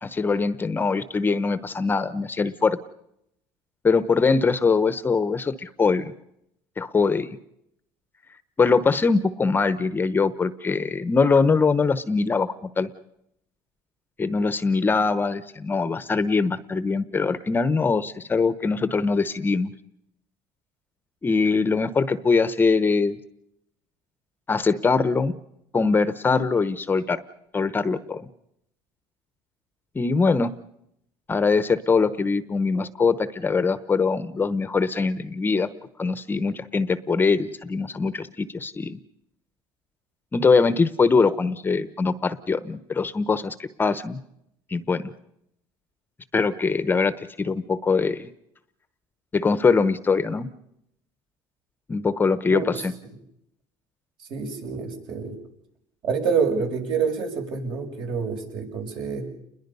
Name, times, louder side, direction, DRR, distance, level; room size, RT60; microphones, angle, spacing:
voice 1, 0.0-2.8 3.8-6.1 6.8-7.3 8.6-12.9 14.2-19.7 21.2-23.2 24.5-25.3 25.7-27.2 27.5-28.3 29.9-30.5 31.3-35.7 36.0-39.0 40.3-44.2 44.7-45.1 46.3-48.3 49.3-50.5 51.9-52.9, left 4 dB, 20° left, 14 dB, 0.9 m, -22 dB
voice 2, 54.3-55.3 56.0-59.3, right 6 dB, 55° right, 3 dB, 6.4 m, -27 dB
29.5 x 21.5 x 5.5 m, 0.77 s
cardioid pair, 130°, 10 cm